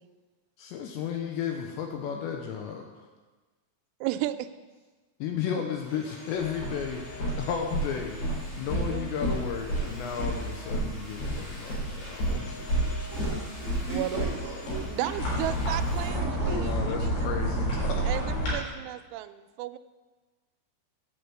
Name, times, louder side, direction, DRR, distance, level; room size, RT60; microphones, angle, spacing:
voice 1, 0.6-3.0 5.2-13.1 16.5-18.1, left 7 dB, 80° left, 3 dB, 2.8 m, -34 dB
voice 2, 4.0-4.5 8.9-9.2 13.9-14.3 14.9-17.3 18.0-19.8, right 15 dB, 85° right, 10 dB, 3.0 m, -34 dB
sound 1, 5.8-16.1, left 1 dB, 45° left, 4.0 m, -46 dB
sound 2, 6.4-18.5, right 1 dB, 65° left, 6.0 m, -30 dB
voice 3, 13.1-15.1 15.9-17.0, right 3 dB, 60° right, -5 dB, 0.9 m, -37 dB
9.9 x 6.7 x 7.6 m, 1.3 s
omnidirectional pair, 5.5 m